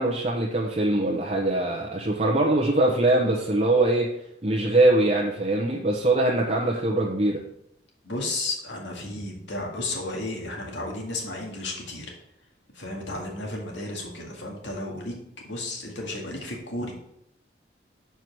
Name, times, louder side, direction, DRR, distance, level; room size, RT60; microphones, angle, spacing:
voice 1, 0.0-4.1 4.4-7.4, right 2 dB, 35° right, -2 dB, 0.9 m, -22 dB
voice 2, 8.0-12.1 12.7-15.1 15.4-16.9, left 2 dB, 85° left, 0 dB, 2.0 m, -33 dB
6.9 x 4.7 x 6.1 m, 0.75 s
head